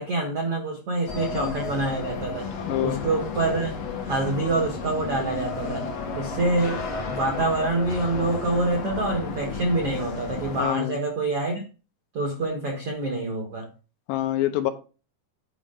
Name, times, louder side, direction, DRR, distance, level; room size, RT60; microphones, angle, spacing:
voice 1, 0.0-2.5 2.8-3.7 4.0-5.9 6.1-11.6 12.1-13.7, right 2 dB, 80° right, 1 dB, 1.3 m, -26 dB
sound 1, 1.1-10.6, left 4 dB, 65° left, 1.6 m, -33 dB
voice 2, 2.7-3.0 10.6-11.0 14.1-14.7, left 14 dB, 85° left, 9 dB, 2.7 m, -26 dB
9.8 x 5.4 x 3.7 m, 0.35 s
omnidirectional pair, 5.1 m